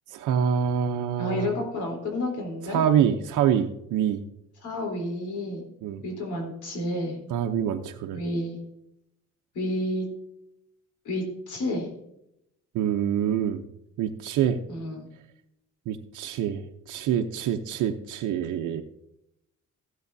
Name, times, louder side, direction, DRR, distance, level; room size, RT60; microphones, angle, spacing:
voice 1, 0.1-1.5 2.7-4.2 5.8-6.0 7.3-8.2 12.7-13.6 14.0-14.6 15.9-18.8, right 9 dB, 90° right, 4 dB, 0.7 m, -26 dB
voice 2, 1.2-2.8 4.6-5.6 6.0-7.2 8.1-8.6 9.5-10.1 11.1-11.9 14.7-15.1, left 1 dB, 80° left, 0 dB, 3.6 m, -30 dB
16.0 x 7.9 x 2.7 m, 0.79 s
cardioid pair, 90°, 30 cm